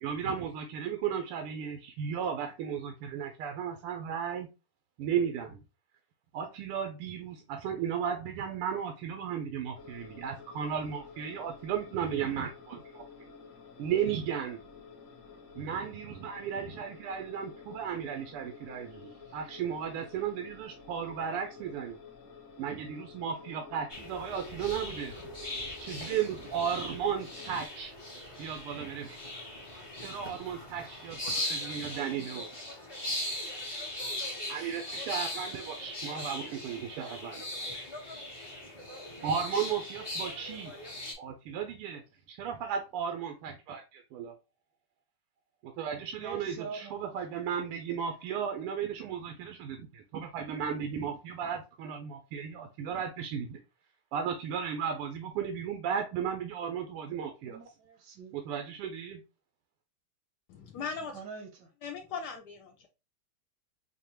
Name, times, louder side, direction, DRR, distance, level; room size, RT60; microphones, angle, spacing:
voice 1, 0.0-4.5 5.0-5.6 6.3-13.0 13.8-14.6 15.5-22.0 22.6-25.1 25.8-27.9 28.4-29.3 30.0-32.5 34.5-37.9 39.2-40.7 41.2-42.0 42.3-44.4 45.6-53.6 54.1-57.6 58.3-59.2, right 7 dB, 90° right, 1.5 m, -35 dB
sound 1, 9.7-27.7, left 5 dB, 55° left, 1.3 m, -51 dB
sound 2, 23.9-41.1, left 1 dB, 35° left, 0.4 m, -39 dB
voice 2, 46.2-47.0 57.5-58.4 61.1-61.7, right 5 dB, 70° right, 1.0 m, -44 dB
voice 3, 60.5-61.2 61.8-62.9, left 5 dB, 80° left, 0.9 m, -39 dB
5.1 x 2.2 x 2.9 m
omnidirectional pair, 2.4 m